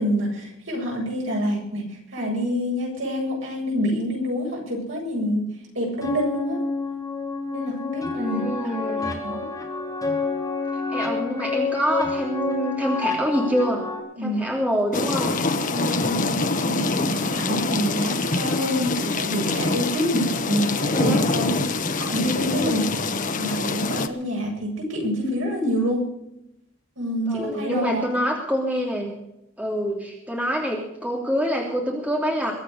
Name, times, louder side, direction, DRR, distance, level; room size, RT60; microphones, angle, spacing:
voice 1, 0.0-1.8 2.1-5.4 5.7-6.6 7.5-8.4 8.9-9.5 14.2-14.4 15.5-22.8 23.4-26.0 27.0-28.3, equal, 65° right, -1 dB, 7.9 m, -27 dB
sound 1, 6.0-14.0, left 3 dB, 15° left, 3.1 m, -28 dB
voice 2, 8.1-9.1 10.9-13.8 14.2-15.4 20.7-21.2 22.5-22.9 27.3-29.2 29.6-32.5, equal, 5° right, -1 dB, 3.1 m, -26 dB
sound 2, 14.9-24.1, left 3 dB, 40° left, 1.1 m, -25 dB
23.0 x 8.6 x 6.7 m, 0.82 s
head